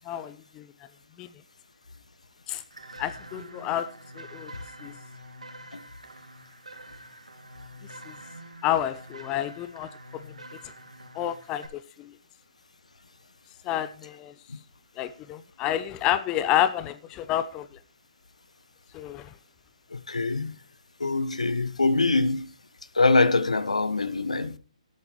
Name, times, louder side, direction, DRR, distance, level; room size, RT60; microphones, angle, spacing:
voice 1, 0.1-0.7 1.2-1.3 2.5-2.6 3.0-3.9 4.2-4.5 4.8-4.9 8.1-8.2 8.6-10.3 11.1-12.1 13.7-14.3 15.0-17.7 18.9-19.3, left 12 dB, 15° left, 0.4 m, -29 dB
sound 1, 2.7-11.7, right 1 dB, 70° right, 2.3 m, -46 dB
voice 2, 19.9-20.6 21.0-22.5 22.9-24.6, left 3 dB, 70° left, 1.0 m, -24 dB
19.0 x 8.5 x 3.0 m
figure-of-eight pair, 135°, 4 cm